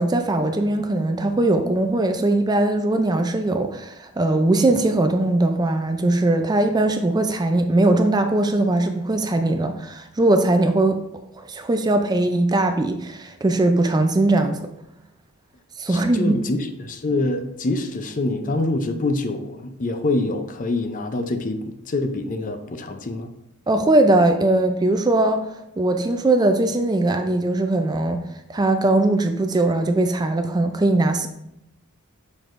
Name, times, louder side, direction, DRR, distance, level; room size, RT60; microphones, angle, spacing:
voice 1, 0.0-11.0 11.4-14.6 15.8-16.4 23.7-25.4 25.8-28.2 28.5-31.3, right 2 dB, 20° right, 6 dB, 0.4 m, -20 dB
voice 2, 15.9-23.3, left 2 dB, 35° left, 7 dB, 0.5 m, -25 dB
7.0 x 6.0 x 2.5 m, 0.82 s
head